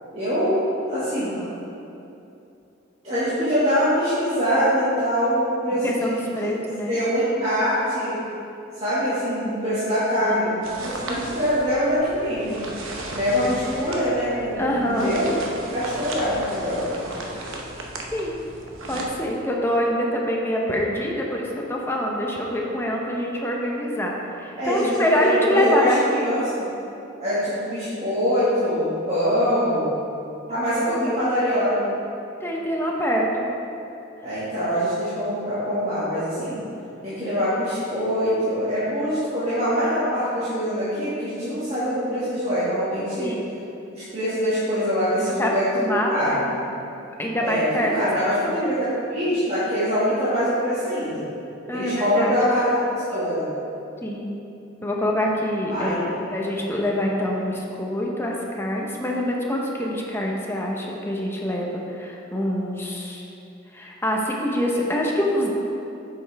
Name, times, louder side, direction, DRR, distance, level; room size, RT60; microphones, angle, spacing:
voice 1, 0.1-1.4 3.0-6.5 6.9-8.2 8.8-10.5 10.8-12.6 13.1-15.3 15.7-16.8 24.6-26.4 27.2-29.9 30.5-31.9 34.2-36.6 37.0-43.3 43.9-46.4 47.4-48.8 49.1-51.2 51.7-52.8 53.1-53.5 55.7-56.1, equal, 35° right, -13 dB, 1.8 m, -24 dB
voice 2, 1.2-1.6 5.7-7.0 10.2-10.4 14.6-15.1 18.1-18.4 18.9-26.2 30.9-31.3 32.4-33.5 43.2-43.5 45.2-46.7 47.2-47.9 51.7-52.3 54.0-54.3 54.8-63.2 63.7-65.5, equal, 10° left, -2 dB, 0.8 m, -25 dB
sound 1, 10.6-19.1, right 2 dB, 85° right, 0.9 m, -35 dB
8.2 x 6.6 x 3.4 m, 2.8 s
head